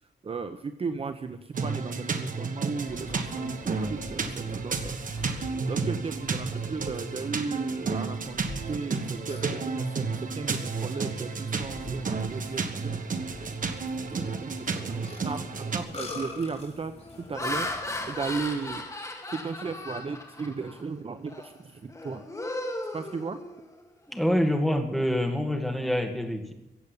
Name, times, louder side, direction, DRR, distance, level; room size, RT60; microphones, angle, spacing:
voice 1, 0.2-8.4 8.7-10.1 10.3-13.6 14.1-16.9 17.3-17.7 18.1-18.8 19.3-22.2 22.9-23.4, right 4 dB, 35° right, 9 dB, 0.7 m, -35 dB
sound 1, 1.5-15.8, right 4 dB, 50° right, 1.5 m, -32 dB
Burping eructation, 2.9-18.8, left 2 dB, 35° left, 4.2 m, -45 dB
Laughter, 15.2-15.5 16.1-16.4 17.0-20.8 21.3-21.5 21.9-23.8, left 2 dB, 20° left, 2.1 m, -36 dB
voice 2, 24.1-26.5, equal, ahead, 3 dB, 2.2 m, -26 dB
15.0 x 8.4 x 9.9 m, 0.93 s
wide cardioid pair, 150°, 18 cm